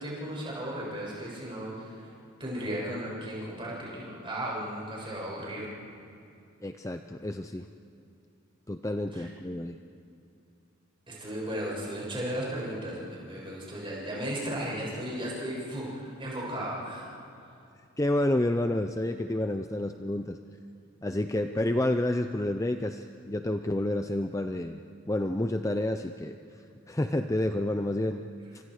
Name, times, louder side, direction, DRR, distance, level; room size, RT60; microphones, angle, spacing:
voice 1, 0.0-2.1 2.4-5.7 9.1-9.3 11.1-17.1, right 1 dB, 25° right, -5 dB, 7.3 m, -35 dB
voice 2, 6.6-7.7 8.7-9.8 18.0-20.4 21.0-24.8 25.1-26.4 26.9-28.2, left 1 dB, 15° left, 7 dB, 0.5 m, -29 dB
30.0 x 25.5 x 4.9 m, 2.5 s
head